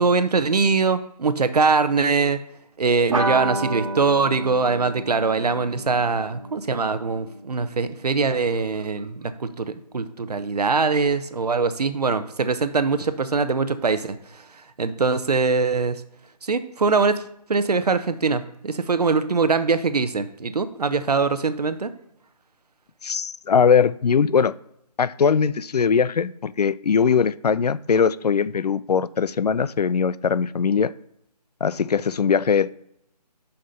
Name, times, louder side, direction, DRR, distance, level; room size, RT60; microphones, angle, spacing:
voice 1, 0.0-2.4 2.8-16.0 16.4-17.2 17.5-21.9, right 4 dB, 65° right, 0.8 m, -22 dB
sound 1, 3.1-8.0, right 1 dB, 50° right, 1.4 m, -31 dB
voice 2, 23.0-24.5 25.0-30.9 31.6-32.7, left 6 dB, 70° left, 0.4 m, -20 dB
6.4 x 5.7 x 5.7 m
figure-of-eight pair, 170°, 21 cm